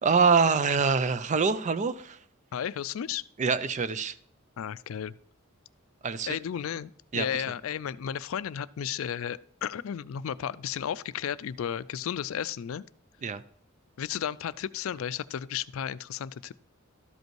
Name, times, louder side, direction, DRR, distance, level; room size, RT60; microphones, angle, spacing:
voice 1, 0.0-2.2 3.4-4.1 6.0-6.4 7.1-7.3 13.2-13.4, right 5 dB, 35° right, 14 dB, 0.4 m, -25 dB
voice 2, 2.5-3.2 4.6-5.2 6.3-12.8 14.0-16.5, left 9 dB, 70° left, 17 dB, 0.3 m, -33 dB
12.5 x 5.3 x 4.6 m, 0.62 s
head